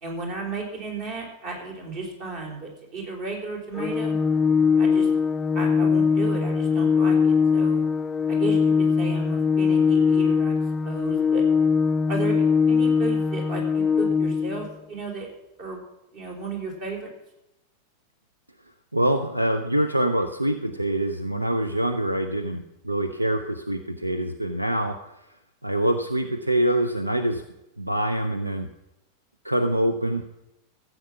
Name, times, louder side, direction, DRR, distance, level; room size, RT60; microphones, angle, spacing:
voice 1, 0.0-4.1 4.8-5.1 5.5-7.8 8.3-10.6 10.8-11.4 12.1-15.3 15.6-15.8 16.1-17.1, right 3 dB, 45° right, 1 dB, 3.8 m, -34 dB
Organ, 3.7-14.7, left 5 dB, 15° left, 0.4 m, -21 dB
voice 2, 18.9-25.0 25.6-27.4 27.8-28.7 29.4-30.2, right 1 dB, 85° right, 8 dB, 0.7 m, -25 dB
14.5 x 7.9 x 6.0 m, 0.94 s
figure-of-eight pair, 90°, 0 cm